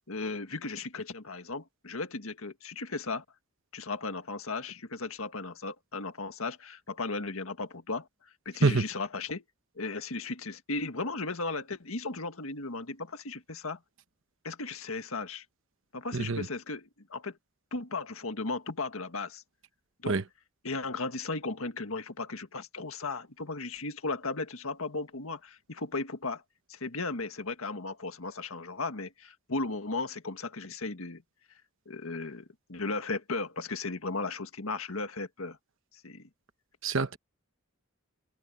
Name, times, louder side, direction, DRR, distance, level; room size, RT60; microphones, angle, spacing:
voice 1, 0.1-3.2 3.7-8.1 8.5-9.4 9.8-13.8 14.4-15.5 15.9-17.4 17.7-19.4 20.0-20.2 20.6-26.4 26.7-31.2 31.9-35.6 36.0-36.3, left 3 dB, 80° left, 1.8 m, -36 dB
voice 2, 16.1-16.4 20.1-20.2 36.8-37.2, right 3 dB, 65° right, 1.1 m, -26 dB
head